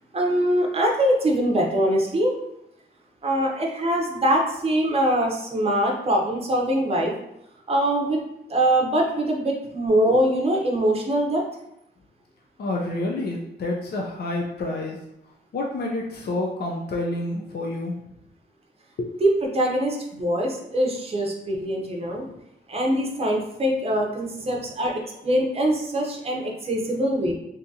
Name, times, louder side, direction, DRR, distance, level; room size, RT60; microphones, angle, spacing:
voice 1, 0.1-2.3 3.2-7.1 7.7-8.2 8.5-11.4 19.2-22.3 22.7-27.3, right 1 dB, 30° right, 0 dB, 0.7 m, -23 dB
voice 2, 12.6-15.0 15.5-18.0 19.0-19.1 24.5-24.6, left 2 dB, 55° left, -1 dB, 0.5 m, -28 dB
3.6 x 2.7 x 2.7 m, 0.82 s
wide cardioid pair, 135°, 19 cm